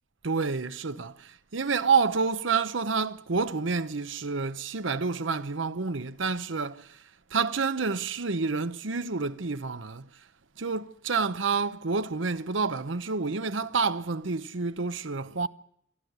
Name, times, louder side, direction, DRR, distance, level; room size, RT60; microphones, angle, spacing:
voice 1, 0.2-7.0 7.3-10.1 10.6-15.5, right 4 dB, 70° right, 0.9 m, -28 dB
28.0 x 12.0 x 8.1 m
head